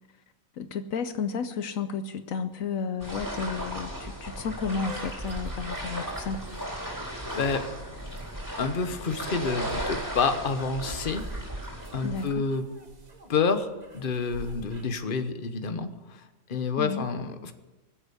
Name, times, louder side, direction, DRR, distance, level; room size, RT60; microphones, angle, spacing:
voice 1, 0.6-6.5 12.0-12.4 16.8-17.1, left 5 dB, 75° left, 10 dB, 1.1 m, -32 dB
sound 1, 3.0-12.3, equal, 15° right, 4.4 m, -36 dB
sound 2, 4.9-14.8, right 2 dB, 30° right, 1.7 m, -44 dB
voice 2, 7.0-7.7 8.6-11.3 11.9-12.7 13.3-13.7 13.9-16.2 16.5-17.5, left 4 dB, 40° left, 9 dB, 1.2 m, -28 dB
23.5 x 8.1 x 7.0 m, 1.2 s
omnidirectional pair, 1.5 m